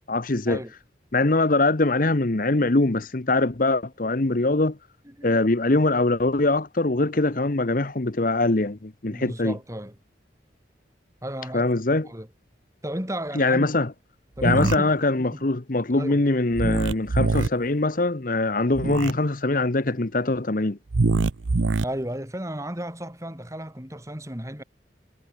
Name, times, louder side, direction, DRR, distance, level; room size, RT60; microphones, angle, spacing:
voice 1, 0.1-0.6 1.1-4.8 5.2-9.6 11.5-12.1 13.3-13.9 14.4-20.8, left 2 dB, 45° left, 1.0 m, -22 dB
voice 2, 5.0-5.4 7.3-7.4 9.1-10.0 11.2-11.7 12.0-12.3 12.8-13.7 14.4-15.4 15.9-16.2 21.8-24.6, right 1 dB, 15° right, 4.8 m, -34 dB
sound 1, 14.4-14.8 16.5-17.5 18.7-19.1 20.9-21.8, right 3 dB, 90° right, 0.7 m, -23 dB
head